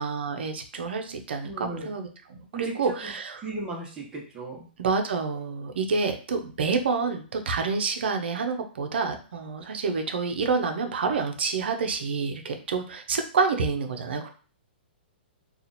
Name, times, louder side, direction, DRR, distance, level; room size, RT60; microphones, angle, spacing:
voice 1, 0.0-3.5 4.8-14.3, right 4 dB, 75° right, 5 dB, 0.7 m, -28 dB
voice 2, 1.4-1.9 2.5-3.1 3.4-4.7, right 3 dB, 15° right, -5 dB, 1.2 m, -36 dB
2.8 x 2.5 x 4.0 m, 0.40 s
hypercardioid pair, 145°, 6 cm